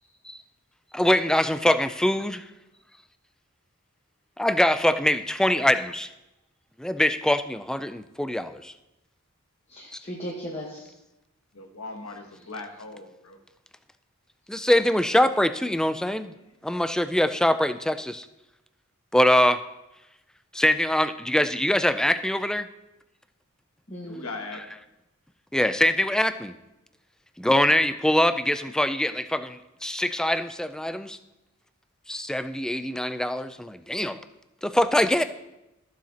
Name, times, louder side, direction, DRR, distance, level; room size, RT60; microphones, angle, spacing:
voice 1, 0.9-2.4 4.4-6.1 6.8-8.7 14.5-16.3 16.6-18.3 19.1-19.6 20.5-22.7 25.5-26.5 27.4-31.2 32.1-34.2 34.6-35.2, left 1 dB, 5° left, 11 dB, 0.3 m, -23 dB
voice 2, 9.7-10.9 23.9-24.3, equal, 30° left, -4 dB, 1.2 m, -37 dB
voice 3, 11.5-13.4 24.0-24.8, left 3 dB, 90° left, 4 dB, 1.3 m, -39 dB
14.5 x 7.3 x 2.8 m, 0.94 s
head